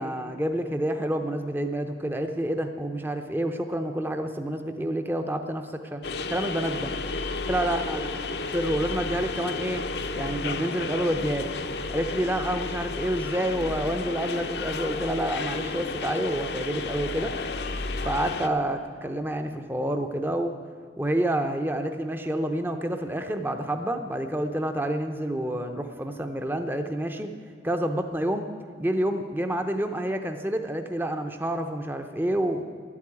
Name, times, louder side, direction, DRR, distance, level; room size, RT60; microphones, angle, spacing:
voice 1, 0.0-6.0 6.3-6.9 7.4-8.1 8.5-9.8 10.2-11.5 11.9-17.3 18.0-20.6 21.0-27.3 27.6-28.5 28.8-32.6, right 1 dB, 10° right, 6 dB, 0.6 m, -28 dB
sound 1, 6.0-18.5, left 3 dB, 65° left, 0.7 m, -32 dB
12.0 x 8.5 x 9.7 m, 2.2 s
head